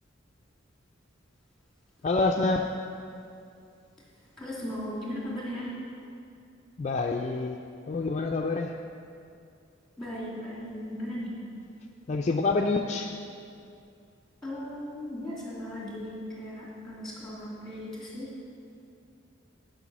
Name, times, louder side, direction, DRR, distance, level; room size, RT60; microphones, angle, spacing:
voice 1, 2.0-2.7 6.8-7.6 7.9-8.7 12.1-13.1, left 3 dB, 35° left, 2 dB, 0.4 m, -27 dB
voice 2, 4.4-5.7 10.0-11.3 14.4-18.3, equal, ahead, -6 dB, 2.6 m, -37 dB
11.0 x 5.4 x 6.0 m, 2.5 s
head